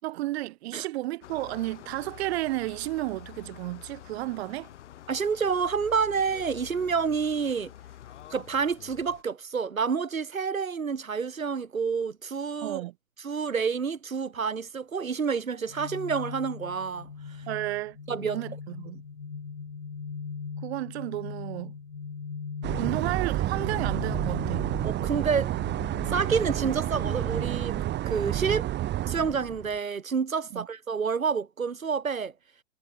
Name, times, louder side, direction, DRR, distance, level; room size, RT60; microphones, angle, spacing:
voice 1, 0.0-4.7 12.6-12.9 17.5-19.0 20.6-21.7 22.8-24.7 30.5-30.7, right 17 dB, 50° right, 7.1 m, -32 dB
sound 1, 1.2-9.2, left 12 dB, 60° left, 5.0 m, -47 dB
voice 2, 5.1-7.7 8.3-12.8 13.2-17.4 18.1-18.4 24.8-25.5 26.1-27.8 28.0-28.7 29.1-32.3, right 6 dB, 80° right, 5.8 m, -28 dB
sound 2, 15.7-28.7, left 5 dB, 80° left, 7.3 m, -40 dB
sound 3, 22.6-29.8, right 14 dB, 25° right, 3.0 m, -30 dB
figure-of-eight pair, 110°, 40 cm